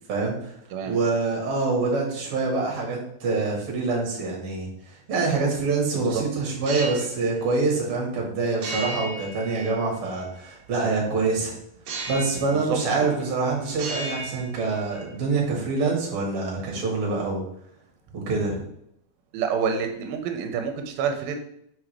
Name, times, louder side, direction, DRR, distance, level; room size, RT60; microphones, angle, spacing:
voice 1, 0.1-0.5 0.9-11.5 12.1-17.4 18.1-18.6, right 3 dB, 45° right, -2 dB, 2.1 m, -25 dB
sound 1, 6.5-7.1 8.6-10.1 11.9-12.6 12.9-13.4 13.7-15.1, right 2 dB, 65° right, 1.7 m, -35 dB
voice 2, 12.5-13.2 19.3-21.4, right 6 dB, 85° right, 5 dB, 2.4 m, -28 dB
6.1 x 4.8 x 3.3 m, 0.72 s
omnidirectional pair, 4.2 m